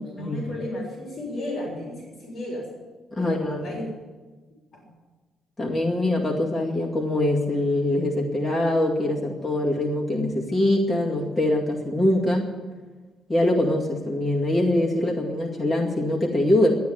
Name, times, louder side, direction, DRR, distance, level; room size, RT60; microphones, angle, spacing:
voice 1, 0.0-2.7 3.2-3.8, left 1 dB, 35° left, -2 dB, 3.9 m, -33 dB
voice 2, 3.1-3.8 5.6-12.5 13.3-16.8, left 1 dB, 5° left, -4 dB, 2.1 m, -23 dB
12.5 x 9.5 x 9.6 m, 1.3 s
cardioid pair, 175°, 0 cm